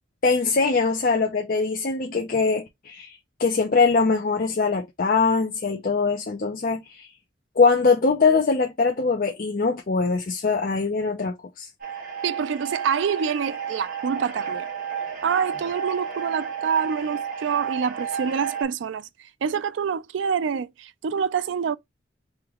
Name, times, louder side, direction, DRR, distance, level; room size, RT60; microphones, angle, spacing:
voice 1, 0.2-7.1 7.6-11.7, left 4 dB, 50° left, 0.6 m, -22 dB
sound 1, 11.8-18.6, right 7 dB, 45° right, 1.3 m, -32 dB
voice 2, 12.2-14.7 15.2-19.1 19.4-21.8, right 6 dB, 80° right, 0.4 m, -26 dB
3.2 x 2.9 x 3.6 m
head